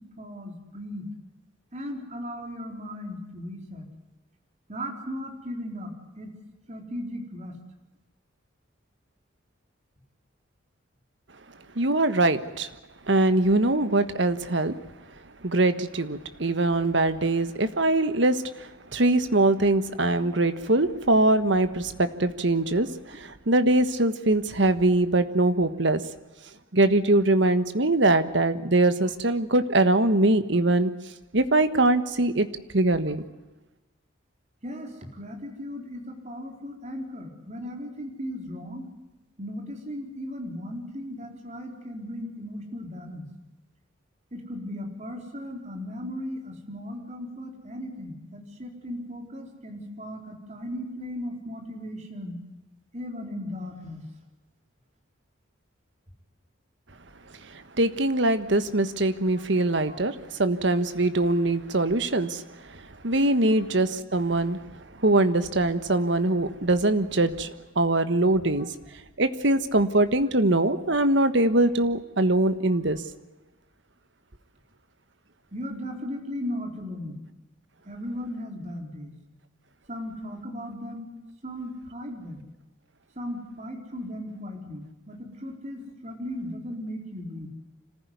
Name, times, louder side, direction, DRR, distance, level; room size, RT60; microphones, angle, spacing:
voice 1, 0.2-1.1 1.7-3.9 4.7-6.3 6.7-7.5 23.1-23.2 25.2-25.3 34.6-38.9 39.4-43.3 44.3-52.4 52.9-54.1 59.9-60.0 63.4-63.6 68.6-68.7 75.5-77.2 77.8-79.2 79.9-81.1 81.4-82.4 83.2-87.5, equal, 35° right, 2 dB, 4.2 m, -37 dB
voice 2, 11.7-12.7 13.1-14.8 15.4-26.0 26.7-30.9 31.3-32.5 32.7-33.2 57.5-68.7 69.2-73.0, right 2 dB, 60° right, 11 dB, 1.4 m, -23 dB
26.5 x 15.0 x 9.5 m, 1.1 s
head